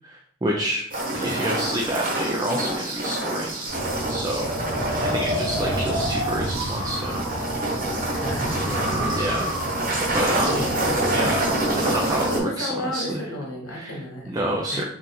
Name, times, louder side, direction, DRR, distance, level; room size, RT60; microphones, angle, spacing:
voice 1, 0.0-0.8 1.1-3.6 4.1-7.3 9.2-9.5 10.1-10.6 11.1-11.5 11.7-13.2 13.7-14.0 14.3-14.8, right 1 dB, 20° right, 0 dB, 0.3 m, -28 dB
sound 1, 0.9-12.4, right 1 dB, 40° right, 1.0 m, -27 dB
Wind, 3.7-12.4, right 1 dB, 65° right, 0.7 m, -29 dB
voice 2, 8.2-9.2 10.5-11.3 12.1-14.3 14.7-14.9, left 1 dB, 90° left, -1 dB, 1.2 m, -33 dB
3.8 x 2.4 x 4.1 m, 0.65 s
head